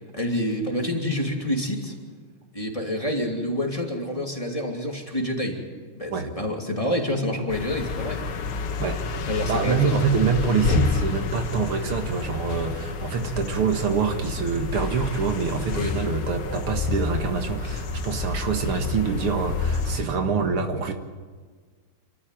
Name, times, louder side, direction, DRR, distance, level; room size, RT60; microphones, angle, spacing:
voice 1, 0.1-1.9 2.5-5.6 6.0-8.2 9.3-10.0 15.7-16.0 17.6-17.8, left 1 dB, 15° left, 0 dB, 2.7 m, -27 dB
sound 1, 7.5-20.0, left 4 dB, 85° left, 2.2 m, -29 dB
voice 2, 9.5-20.9, right 5 dB, 80° right, 5 dB, 2.5 m, -25 dB
28.5 x 13.5 x 9.2 m, 1.5 s
omnidirectional pair, 2.4 m